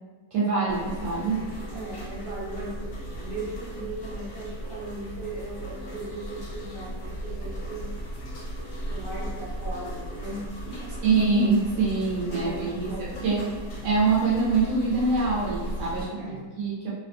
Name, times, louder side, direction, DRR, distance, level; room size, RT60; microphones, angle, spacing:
voice 1, 0.3-1.4 11.0-13.4 13.8-16.9, right 4 dB, 80° right, -6 dB, 1.2 m, -24 dB
sound 1, 0.7-16.1, right 1 dB, 60° left, 1.0 m, -37 dB
voice 2, 1.7-8.0 8.9-10.4 10.8-11.1 12.3-13.6 16.2-16.5, right 2 dB, 60° right, -6 dB, 1.2 m, -38 dB
3.2 x 2.2 x 2.5 m, 1.3 s
omnidirectional pair, 1.8 m